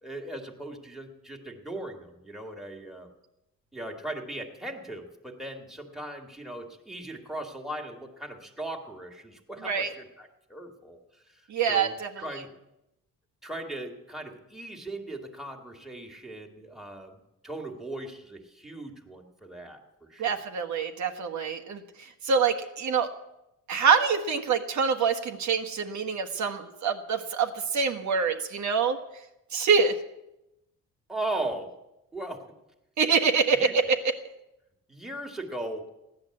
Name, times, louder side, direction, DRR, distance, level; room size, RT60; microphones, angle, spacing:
voice 1, 0.0-3.1 3.7-11.0 11.3-12.5 13.4-20.4 31.1-31.7 32.1-32.4 33.5-33.7 34.9-35.9, right 1 dB, ahead, 1 dB, 1.9 m, -38 dB
voice 2, 11.5-12.3 20.2-23.1 23.7-29.0 29.5-29.9 33.0-34.1, right 5 dB, 60° right, 5 dB, 1.4 m, -25 dB
16.0 x 10.5 x 7.7 m, 0.90 s
cardioid pair, 140°, 33 cm